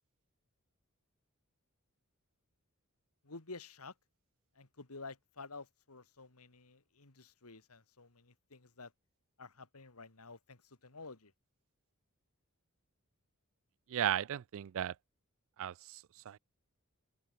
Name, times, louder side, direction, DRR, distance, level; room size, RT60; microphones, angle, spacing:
voice 1, 3.2-3.9 4.6-8.9 9.4-11.3, left 3 dB, 75° left, 2.2 m, -51 dB
voice 2, 13.9-14.9 15.6-16.4, right 10 dB, 60° right, 0.3 m, -36 dB
open air
head